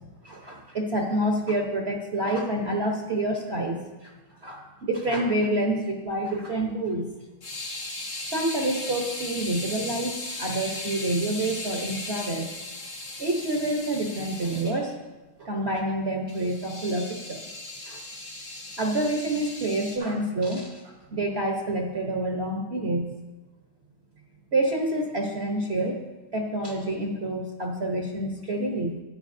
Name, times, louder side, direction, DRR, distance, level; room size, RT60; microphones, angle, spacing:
voice 1, 0.2-4.1 4.4-7.1 8.3-12.5 13.2-15.0 15.4-17.4 17.9-18.0 18.8-23.1 24.5-26.0 26.3-29.0, right 1 dB, 45° right, 0 dB, 1.1 m, -28 dB
sound 1, 7.4-14.7 16.3-20.0, left 2 dB, 75° left, 2.5 m, -37 dB
12.5 x 10.0 x 2.7 m, 1.2 s
omnidirectional pair, 2.0 m